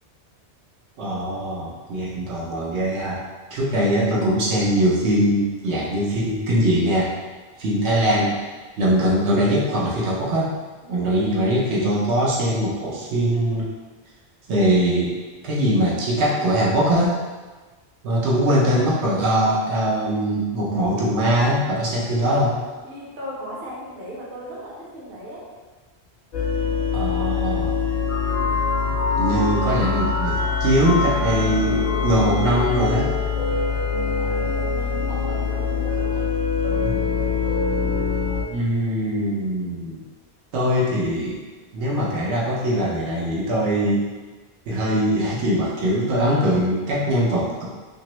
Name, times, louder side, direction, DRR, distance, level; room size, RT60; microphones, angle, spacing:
voice 1, 1.0-3.2 3.5-7.1 7.6-8.4 8.8-10.5 10.9-13.7 14.5-15.2 15.4-17.2 18.0-22.6 26.9-27.9 28.8-33.1 36.8-37.0 38.5-40.0 40.5-41.4 41.7-44.1 44.7-47.7, right 1 dB, 90° right, -5 dB, 0.9 m, -21 dB
voice 2, 22.8-25.5 28.3-28.6 33.9-36.3, equal, 65° right, -5 dB, 1.0 m, -38 dB
sound 1, 26.3-38.4, left 6 dB, 50° left, 0.6 m, -24 dB
sound 2, 28.1-33.1, left 2 dB, 75° left, 0.8 m, -28 dB
sound 3, 31.0-38.2, left 1 dB, 5° right, 0.5 m, -33 dB
2.9 x 2.6 x 3.0 m, 1.4 s
omnidirectional pair, 1.1 m